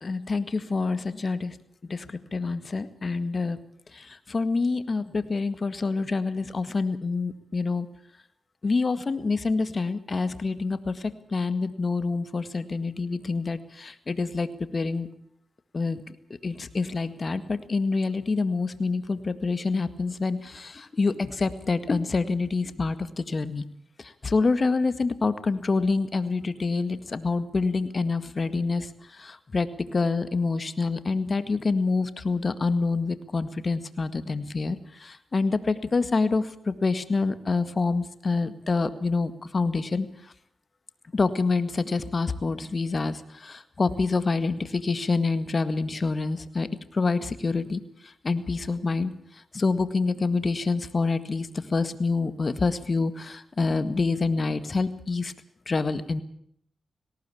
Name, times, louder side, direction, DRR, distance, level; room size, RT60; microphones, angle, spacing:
voice 1, 0.0-1.5 1.9-2.0 2.3-3.6 3.9-7.9 8.6-15.1 15.7-16.0 16.4-23.6 24.2-28.9 29.2-40.1 41.1-46.7 46.9-47.8 48.2-49.1 49.5-55.3 55.7-56.2, left 3 dB, 50° left, 13 dB, 1.9 m, -27 dB
18.5 x 18.5 x 8.6 m, 0.67 s
cardioid pair, 50°, 0 cm